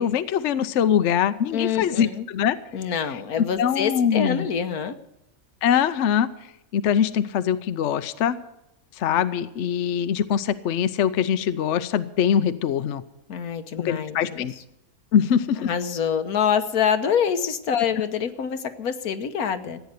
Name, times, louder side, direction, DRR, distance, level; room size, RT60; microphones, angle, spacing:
voice 1, 0.0-2.6 3.6-4.5 5.6-6.3 6.7-8.4 9.0-13.0 13.8-14.5 15.1-15.7, left 8 dB, 60° left, 12 dB, 0.9 m, -23 dB
voice 2, 1.5-2.3 2.7-4.9 13.3-14.6 15.6-19.8, left 7 dB, 80° left, 9 dB, 1.5 m, -26 dB
15.0 x 9.2 x 8.2 m, 0.86 s
omnidirectional pair, 1.5 m